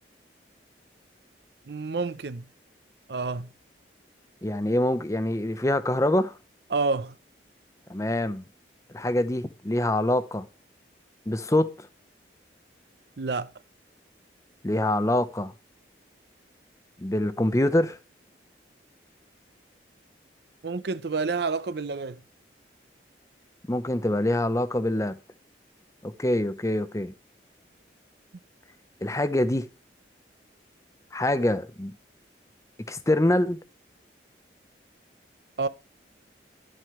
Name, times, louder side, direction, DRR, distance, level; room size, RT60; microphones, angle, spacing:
voice 1, 1.7-2.5 3.1-3.5 6.7-7.1 13.2-13.5 20.6-22.2 35.6-35.7, right 4 dB, 65° right, 0.6 m, -29 dB
voice 2, 4.4-6.4 7.9-8.4 8.9-10.5 11.3-11.9 14.6-15.5 17.0-18.0 23.7-25.2 26.0-27.1 29.0-29.6 31.1-32.0 32.9-33.6, left 1 dB, 15° left, 0.6 m, -25 dB
10.5 x 7.7 x 3.1 m
head